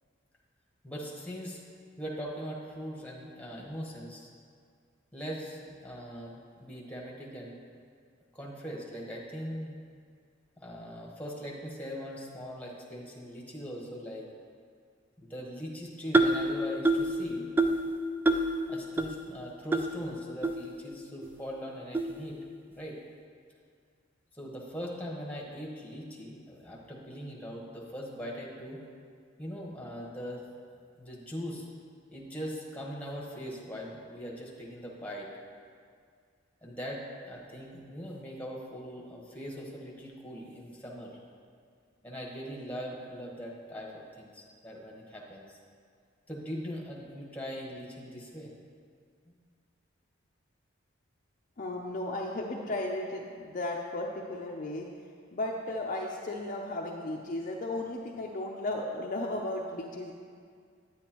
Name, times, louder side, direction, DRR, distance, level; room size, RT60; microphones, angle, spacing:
voice 1, 0.8-1.6 2.0-4.3 5.1-7.6 8.3-9.7 10.6-14.3 15.2-17.5 18.7-22.4 22.8-23.0 24.3-28.8 29.4-30.4 31.0-31.7 32.1-35.3 36.6-41.2 42.0-45.6 46.3-48.5, equal, 10° left, -3 dB, 1.2 m, -41 dB
sound 1, 16.1-16.5 16.9-17.1 17.6-17.9 18.3-18.5 19.0-19.1 19.7-19.8 20.4-20.5 21.2-21.3 21.9-22.1, right 2 dB, 10° right, 0.3 m, -24 dB
voice 2, 51.6-54.9 55.3-60.1, left 2 dB, 40° left, -1 dB, 0.6 m, -35 dB
9.2 x 9.0 x 3.0 m, 2.1 s
head